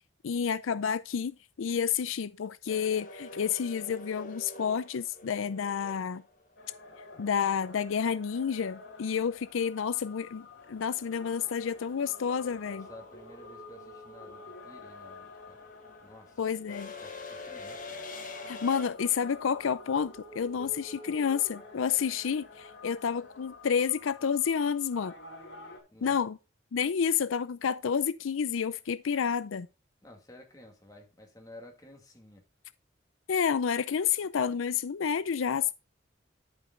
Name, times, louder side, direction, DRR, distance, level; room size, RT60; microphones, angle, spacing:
voice 1, 0.2-6.2 7.2-12.9 16.4-16.9 18.5-25.1 26.0-26.4 26.7-29.7 33.3-35.7, left 7 dB, 90° left, 0.5 m, -30 dB
sound 1, 2.7-6.7 9.1-9.2 10.5-10.8 11.1-18.9, left 2 dB, 40° left, 1.4 m, -45 dB
sound 2, 6.6-25.8, left 2 dB, 70° left, 2.5 m, -49 dB
voice 2, 12.6-15.6 16.0-16.4 17.0-17.9 20.6-20.7 25.9-26.2 30.0-32.4, left 1 dB, 15° left, 2.1 m, -52 dB
11.5 x 5.3 x 3.8 m
head